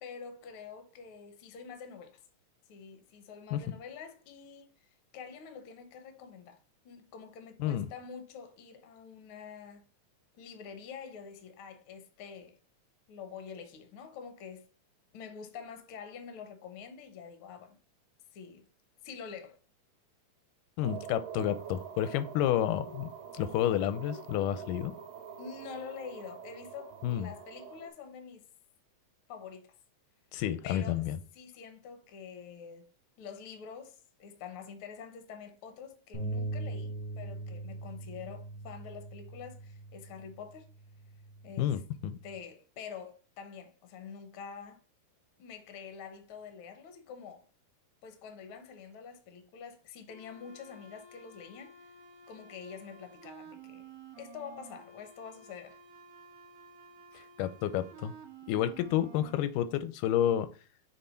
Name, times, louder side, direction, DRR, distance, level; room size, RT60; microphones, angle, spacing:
voice 1, 0.0-2.2 2.7-6.6 6.8-9.8 10.4-12.6 13.1-14.7 15.1-17.8 18.3-18.7 19.0-19.6 25.4-28.4 29.3-29.7 30.6-31.1 31.3-32.9 33.2-40.7 41.4-41.8 42.2-44.8 45.4-47.4 48.0-51.7 52.3-53.9 54.2-55.8, left 6 dB, 65° left, 1.3 m, -46 dB
voice 2, 20.8-23.1 23.3-24.9 27.0-27.3 30.3-31.2 41.6-42.2 57.1-58.1 58.5-60.5, left 11 dB, 90° left, 2.1 m, -30 dB
sound 1, 20.8-27.9, right 7 dB, 85° right, 2.4 m, -46 dB
sound 2, 36.1-42.4, right 2 dB, 25° right, 1.8 m, -41 dB
sound 3, 50.1-59.4, right 5 dB, 70° right, 1.6 m, -53 dB
6.8 x 3.5 x 4.4 m
omnidirectional pair, 3.7 m